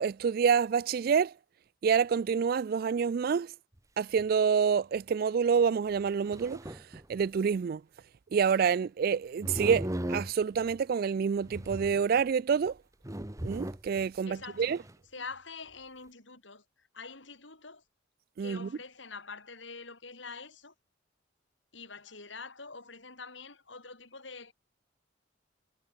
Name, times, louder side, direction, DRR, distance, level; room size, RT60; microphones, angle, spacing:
voice 1, 0.0-1.3 1.8-3.5 4.0-6.8 7.1-7.8 8.3-12.8 13.4-14.8 18.4-18.7, right 6 dB, 50° right, 0.3 m, -27 dB
sound 1, 3.8-3.9 4.2-4.3 5.0-5.1 6.0-7.5 9.4-10.8 11.4-12.2 12.7-12.8 13.0-14.1 14.4-14.9, right 1 dB, 15° right, 1.2 m, -38 dB
voice 2, 14.3-14.8 15.1-17.8 18.4-20.7 21.7-24.5, left 4 dB, 70° left, 6.7 m, -45 dB
head